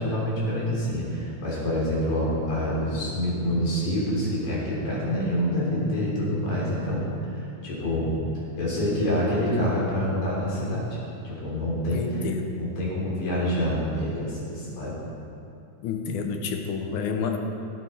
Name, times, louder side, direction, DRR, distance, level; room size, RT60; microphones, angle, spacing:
voice 1, 0.0-8.1 8.6-10.9 11.2-12.2 12.5-14.9, equal, 65° left, -6 dB, 4.4 m, -27 dB
voice 2, 11.9-12.6 15.8-17.4, left 5 dB, 85° left, 5 dB, 2.3 m, -29 dB
16.5 x 8.6 x 4.2 m, 2.6 s
omnidirectional pair, 3.5 m